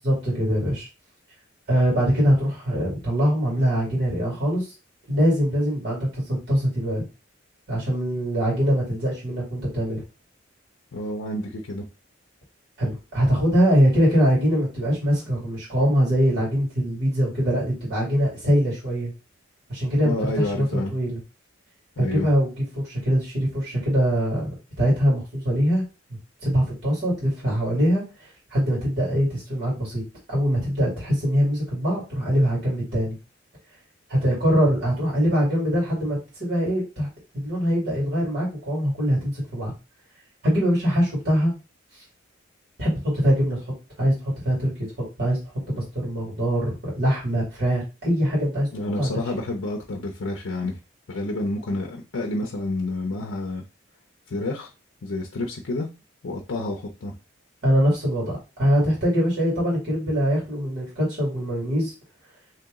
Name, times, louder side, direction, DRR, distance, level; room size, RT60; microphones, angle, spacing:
voice 1, 0.0-0.9 1.7-4.7 5.1-7.0 7.7-10.0 12.8-19.1 19.7-21.2 22.0-24.5 24.8-25.8 26.4-30.0 30.3-33.2 34.1-37.1 37.3-39.7 40.4-41.5 42.8-43.6 44.0-44.7 45.0-45.4 45.7-48.7 49.0-49.1 57.6-61.9, equal, 55° right, -6 dB, 2.1 m, -23 dB
voice 2, 10.9-11.9 20.0-20.9 22.0-22.3 48.7-50.8 51.1-53.6 54.3-54.7 55.0-55.9 56.2-57.1, left 2 dB, 80° left, 1 dB, 0.6 m, -29 dB
3.0 x 2.9 x 3.6 m, 0.29 s
head